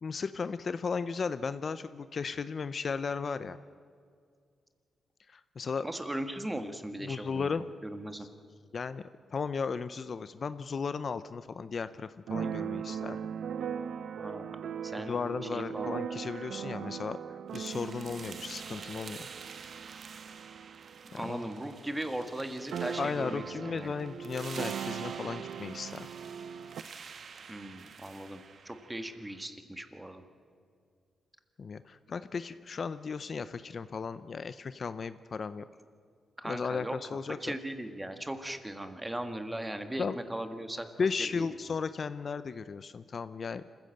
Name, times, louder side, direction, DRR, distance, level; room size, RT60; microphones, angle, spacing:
voice 1, 0.0-3.6 5.3-5.9 7.0-7.6 8.2-8.3 8.7-9.0 9.3-13.2 15.0-19.3 21.1-21.5 23.0-26.1 31.6-35.6 36.4-37.4 40.0-40.2 41.0-43.6, left 5 dB, 45° left, 13 dB, 0.6 m, -35 dB
voice 2, 5.8-8.3 14.2-14.5 14.8-15.2 15.5-15.9 21.1-23.9 27.5-30.2 36.4-36.9 37.4-40.9 41.3-41.5, right 1 dB, 10° right, 7 dB, 1.7 m, -38 dB
Keyboard (musical), 12.3-21.8 22.1-22.2 22.4-26.8, right 8 dB, 75° right, 0.6 m, -39 dB
sound 1, 17.5-29.5, right 6 dB, 55° right, 1.2 m, -48 dB
26.5 x 15.5 x 7.9 m, 2.2 s
wide cardioid pair, 120°, 0 cm